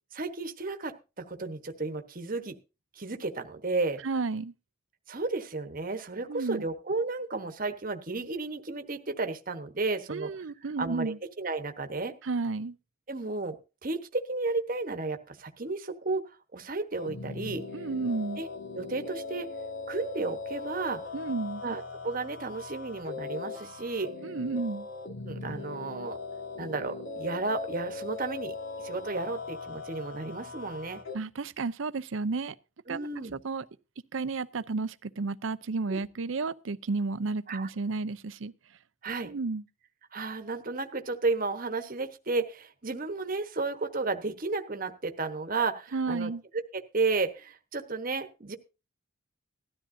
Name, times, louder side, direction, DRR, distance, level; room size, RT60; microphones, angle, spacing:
voice 1, 0.1-2.6 3.0-4.0 5.1-10.3 10.8-12.2 13.1-13.6 13.8-17.7 18.4-18.5 18.7-19.5 19.9-21.0 21.6-24.1 25.2-26.2 26.6-28.6 28.8-31.0 32.9-33.3 35.9-36.0 37.5-37.7 39.0-39.3 40.1-46.3 46.7-48.6, right 3 dB, 40° right, 1.1 m, -33 dB
voice 2, 4.0-4.5 6.3-6.6 10.1-11.2 12.2-12.8 17.7-18.4 21.1-21.6 24.2-24.9 31.1-32.6 32.9-33.6 34.1-38.5 39.2-39.6 45.9-46.4, right 3 dB, 70° right, 0.6 m, -32 dB
sound 1, 16.9-31.2, left 4 dB, 75° left, 2.0 m, -40 dB
18.5 x 12.5 x 2.7 m
head